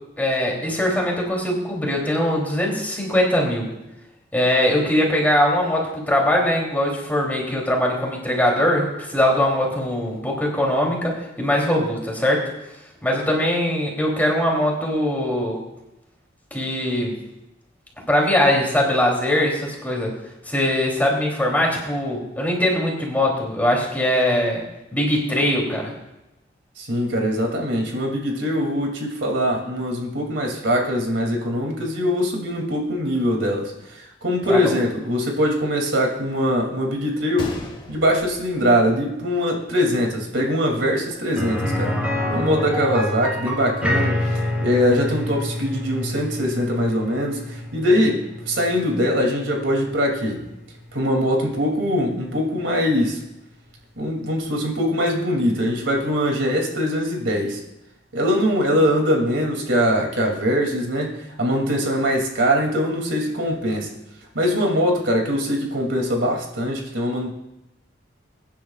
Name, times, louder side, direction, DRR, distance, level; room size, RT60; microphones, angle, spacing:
voice 1, 0.2-3.7 4.3-12.4 13.0-15.6 16.5-17.2 18.1-20.1 20.4-24.6 24.9-25.9 34.5-34.7, left 1 dB, 10° left, -1 dB, 3.0 m, -21 dB
voice 2, 26.8-37.5 37.9-42.0 42.3-50.4 50.9-53.2 54.0-57.6 58.1-61.1 61.4-63.9 64.3-67.3, equal, 80° right, 1 dB, 2.7 m, -22 dB
Gunshot gunfire, 37.4-39.4 39.7-39.8 40.5-40.7, left 1 dB, 30° left, 1.7 m, -38 dB
sound 1, 41.4-51.1 51.4-51.5 54.0-54.1, left 1 dB, 10° right, 3.1 m, -27 dB
22.0 x 10.0 x 2.4 m, 0.91 s
head